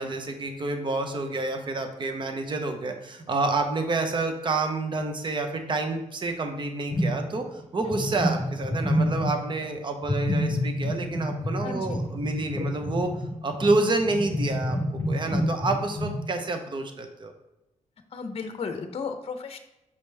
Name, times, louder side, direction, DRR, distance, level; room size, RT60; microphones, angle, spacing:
voice 1, 0.0-13.1 13.4-17.3, right 3 dB, 40° right, 6 dB, 0.9 m, -28 dB
sound 1, 6.9-7.6 7.8-9.6 10.0-16.2, left 1 dB, 10° left, 2.0 m, -28 dB
voice 2, 11.6-12.0 15.2-15.3 18.1-19.6, left 5 dB, 50° left, 7 dB, 0.7 m, -34 dB
6.8 x 5.1 x 3.4 m, 0.92 s
cardioid pair, 100°, 13 cm